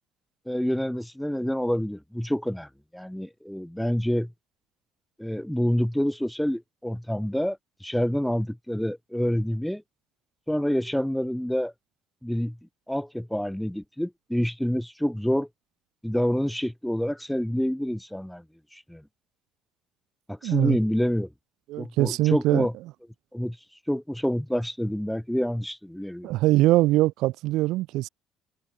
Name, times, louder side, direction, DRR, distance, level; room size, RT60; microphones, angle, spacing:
voice 1, 0.5-4.3 5.2-9.8 10.5-11.7 12.2-12.6 12.9-15.5 16.0-18.4 18.7-19.0 20.3-21.3 21.8-22.7 23.3-23.6 23.9-26.3, equal, ahead, 1.4 m, -27 dB
voice 2, 20.4-20.8 21.7-22.7 26.2-28.1, right 17 dB, 75° right, 3.5 m, -22 dB
cardioid pair, 130°, 0 cm